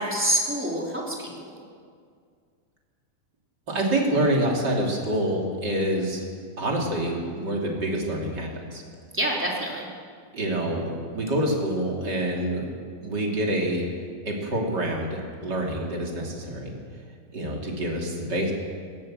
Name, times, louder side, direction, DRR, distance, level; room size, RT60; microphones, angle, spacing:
voice 1, 0.0-1.5 9.1-9.9, right 1 dB, 5° right, -3 dB, 2.9 m, -27 dB
voice 2, 3.7-6.2 6.6-8.8 10.3-12.7 13.0-13.8 14.2-16.7 17.3-18.5, right 1 dB, 25° right, -1 dB, 3.0 m, -26 dB
20.5 x 17.5 x 7.6 m, 2.1 s
omnidirectional pair, 4.8 m